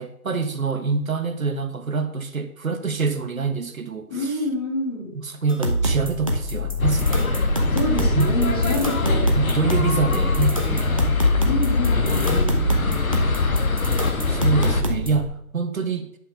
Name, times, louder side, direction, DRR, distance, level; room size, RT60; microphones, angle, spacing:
voice 1, 0.0-4.3 5.1-7.3 8.1-8.3 9.3-11.6 12.3-12.4 14.3-16.1, right 5 dB, 65° right, 7 dB, 1.4 m, -26 dB
voice 2, 4.1-5.1 7.7-9.3 10.4-10.8 11.5-12.6, left 1 dB, 15° left, -4 dB, 1.7 m, -27 dB
sound 1, 5.5-15.2, equal, 25° right, 0.7 m, -26 dB
sound 2, 6.8-14.8, left 3 dB, 65° left, 1.6 m, -22 dB
10.0 x 5.7 x 5.6 m, 0.73 s
figure-of-eight pair, 170°, 45 cm